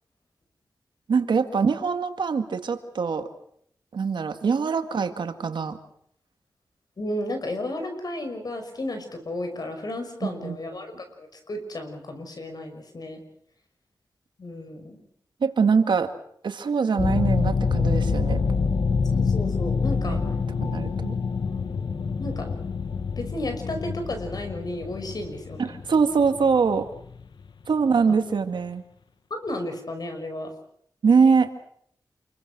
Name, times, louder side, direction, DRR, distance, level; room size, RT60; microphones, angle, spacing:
voice 1, 1.1-3.3 3.9-5.8 10.2-10.6 15.4-16.1 16.4-18.4 20.0-20.4 20.6-21.1 25.6-26.9 27.7-28.8 31.0-31.5, right 5 dB, 90° right, 8 dB, 2.1 m, -23 dB
voice 2, 7.0-13.2 14.4-15.0 19.1-20.3 22.2-22.5 23.2-25.8 29.3-30.5, left 1 dB, 60° left, 6 dB, 5.9 m, -33 dB
sound 1, 17.0-28.0, left 5 dB, 80° left, 1.3 m, -26 dB
29.0 x 22.5 x 6.3 m, 0.68 s
wide cardioid pair, 85°, 8 cm